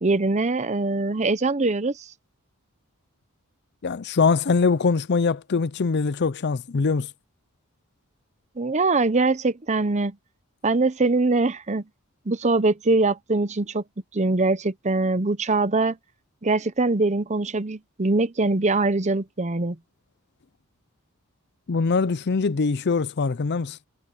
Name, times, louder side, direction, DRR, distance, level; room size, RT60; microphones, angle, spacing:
voice 1, 0.0-2.0 8.6-10.2 10.6-11.8 12.3-13.8 14.1-16.0 16.4-19.8, right 3 dB, 30° right, 0.8 m, -22 dB
voice 2, 3.8-7.1 21.7-23.8, left 4 dB, 50° left, 0.5 m, -23 dB
head